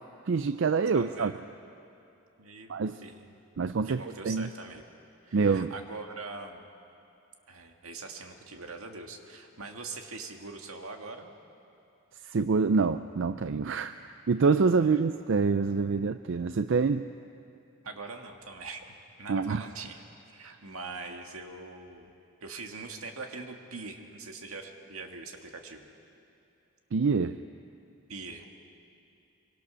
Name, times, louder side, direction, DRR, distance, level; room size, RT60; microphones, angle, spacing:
voice 1, 0.3-1.3 2.7-3.0 3.6-4.5 5.3-5.7 12.2-17.0 19.3-19.6 20.5-20.6 26.9-27.4, right 4 dB, 60° right, 11 dB, 0.4 m, -26 dB
voice 2, 0.9-1.4 2.4-3.4 3.8-4.8 5.3-6.7 7.5-11.3 14.9-15.0 17.8-18.8 19.2-22.1 22.4-25.9 28.1-28.5, right 3 dB, 85° right, 4 dB, 1.9 m, -42 dB
24.5 x 23.0 x 6.3 m, 2.7 s
head